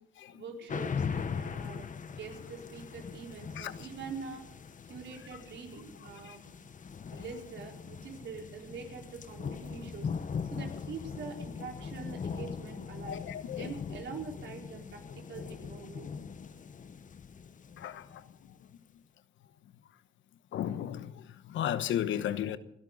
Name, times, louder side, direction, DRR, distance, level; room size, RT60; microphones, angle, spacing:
voice 1, 0.3-1.9 2.1-4.4 4.8-6.4 7.1-13.2 13.6-16.1, right 5 dB, 70° right, 4.5 m, -44 dB
sound 1, 0.7-18.5, left 6 dB, 40° left, 1.1 m, -40 dB
voice 2, 13.1-13.7 17.8-18.2 20.5-22.6, left 10 dB, 75° left, 1.1 m, -34 dB
29.0 x 12.0 x 4.0 m
cardioid pair, 90°, 20 cm